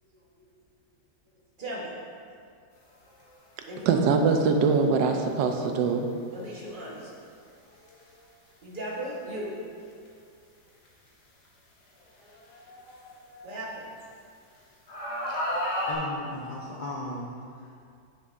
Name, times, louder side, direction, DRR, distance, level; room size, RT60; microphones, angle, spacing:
voice 1, 1.6-1.9 3.7-4.0 6.3-7.1 8.6-9.6 13.4-13.9, right 1 dB, 30° right, -5 dB, 1.3 m, -37 dB
sound 1, 3.1-3.3 4.7-4.8 7.8-8.0 8.9-9.0 10.1-10.2 10.9-11.0 12.2-14.0 14.9-15.9, left 1 dB, 70° left, 1.9 m, -33 dB
voice 2, 3.9-6.1, right 4 dB, 90° right, 4 dB, 1.3 m, -23 dB
voice 3, 15.2-15.6 15.9-17.7, left 1 dB, 50° left, -5 dB, 0.5 m, -37 dB
9.5 x 6.6 x 2.6 m, 2.4 s
omnidirectional pair, 1.9 m